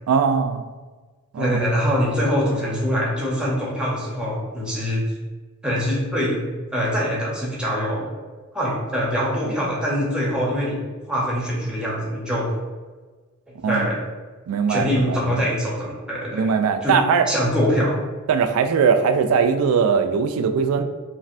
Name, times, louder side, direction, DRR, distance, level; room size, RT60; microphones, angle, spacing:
voice 1, 0.1-0.6 1.3-1.6 9.4-9.5 13.6-13.9 14.5-15.4 16.3-17.3 18.3-20.8, right 6 dB, 75° right, 12 dB, 0.3 m, -20 dB
voice 2, 1.4-5.1 5.6-6.4 6.7-8.1 8.5-10.8 11.1-12.5 13.7-14.0 14.7-16.5 16.8-16.9 17.3-18.0, equal, 5° right, -6 dB, 0.7 m, -23 dB
3.2 x 2.5 x 2.5 m, 1.4 s
head